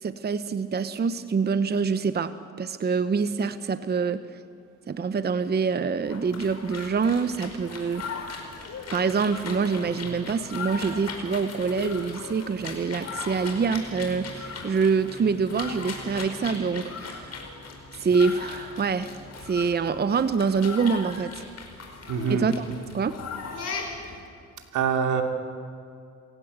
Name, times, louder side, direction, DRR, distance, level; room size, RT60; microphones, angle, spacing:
voice 1, 0.0-4.4 4.9-8.0 8.9-17.3 18.0-19.1 19.4-21.4 22.3-22.7 22.9-23.2, right 5 dB, 35° right, 12 dB, 0.9 m, -26 dB
sound 1, 6.0-24.2, left 4 dB, 55° left, 4.9 m, -38 dB
voice 2, 22.1-22.5 24.7-25.2, right 6 dB, 80° right, 5 dB, 2.7 m, -24 dB
28.5 x 16.5 x 8.1 m, 2.5 s
cardioid pair, 90°, 30 cm